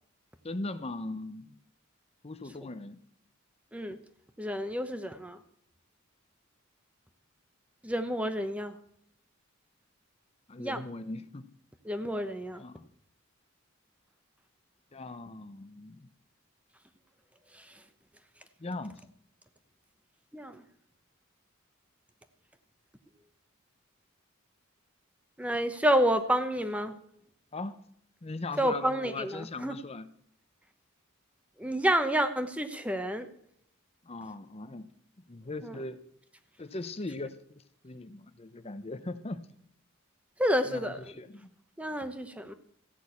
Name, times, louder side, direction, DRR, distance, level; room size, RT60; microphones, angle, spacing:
voice 1, 0.4-1.6 2.2-3.0 10.5-11.5 12.6-12.9 14.9-16.1 18.6-19.0 27.5-27.8 28.2-30.1 34.0-34.9 35.3-36.0 36.6-39.5 40.7-41.5, left 2 dB, 30° left, 0.7 m, -39 dB
voice 2, 4.4-5.4 7.8-8.7 10.6-10.8 11.8-12.6 17.5-17.8 20.3-20.6 25.4-26.9 28.6-29.8 31.6-33.3 35.6-35.8 40.4-41.1 41.8-42.5, equal, 5° right, 0.8 m, -29 dB
14.5 x 6.2 x 8.4 m
head